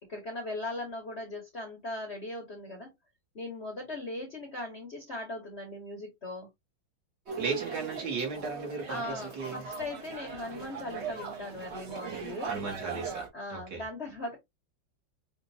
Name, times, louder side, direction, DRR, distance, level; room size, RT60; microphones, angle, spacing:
voice 1, 0.1-2.9 3.3-6.5 8.9-12.6 13.3-14.4, left 2 dB, 40° left, 1.1 m, -39 dB
sound 1, 7.3-13.3, right 6 dB, 40° right, 1.2 m, -39 dB
voice 2, 7.4-9.7 12.5-13.8, right 4 dB, 55° right, 2.3 m, -36 dB
5.1 x 2.6 x 2.6 m
omnidirectional pair, 2.1 m